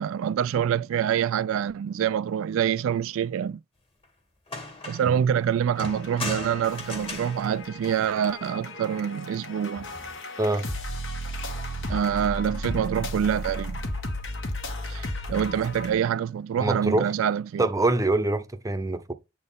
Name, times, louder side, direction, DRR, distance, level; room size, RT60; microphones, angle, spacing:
voice 1, 0.0-3.6 4.9-9.9 11.9-13.8 14.9-17.7, right 8 dB, 80° right, 0.3 m, -26 dB
sound 1, 4.0-4.1 4.5-5.2 5.8-8.5 9.8-10.2, left 2 dB, 30° left, 1.9 m, -38 dB
sound 2, 5.8-15.9, left 1 dB, 65° left, 1.6 m, -35 dB
voice 2, 16.6-17.1 17.6-19.1, right 2 dB, 15° right, 0.7 m, -24 dB
7.7 x 4.2 x 3.4 m
head